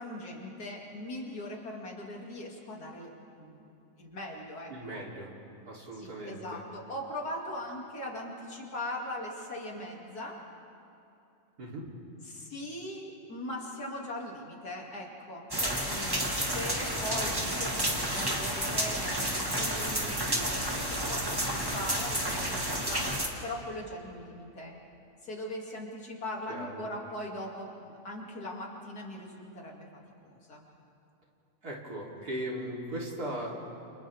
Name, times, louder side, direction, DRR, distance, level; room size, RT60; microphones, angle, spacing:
voice 1, 0.0-3.7 4.0-5.0 5.9-10.4 12.3-23.1 23.4-24.8 25.2-29.9 30.2-30.6, left 1 dB, 90° left, -1 dB, 3.3 m, -40 dB
voice 2, 4.7-5.3 5.7-6.4 11.6-11.9 26.5-26.8 31.6-33.5, right 1 dB, 90° right, -4 dB, 4.0 m, -38 dB
sound 1, 15.5-23.3, right 1 dB, 15° right, 2.0 m, -31 dB
29.5 x 29.0 x 3.6 m, 2.8 s
omnidirectional pair, 1.6 m